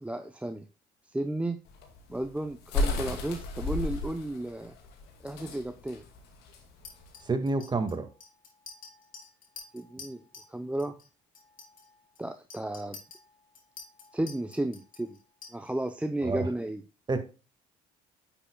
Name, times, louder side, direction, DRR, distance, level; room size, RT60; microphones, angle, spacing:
voice 1, 0.0-0.7 1.1-1.6 2.1-4.7 5.2-6.0 9.7-10.2 10.5-11.0 12.2-13.0 14.1-15.2 15.5-16.8, right 1 dB, 5° right, 7 dB, 0.7 m, -33 dB
sound 1, 1.7-7.3, left 2 dB, 75° left, 2.2 m, -33 dB
Chink clink, 6.8-10.5 10.8-11.1 11.3-15.9, left 5 dB, 55° left, 3.4 m, -49 dB
voice 2, 7.3-8.1 16.2-16.5 17.1-17.2, right 3 dB, 25° right, 7 dB, 1.8 m, -28 dB
9.9 x 6.9 x 2.3 m, 0.32 s
supercardioid pair, 70°, 17 cm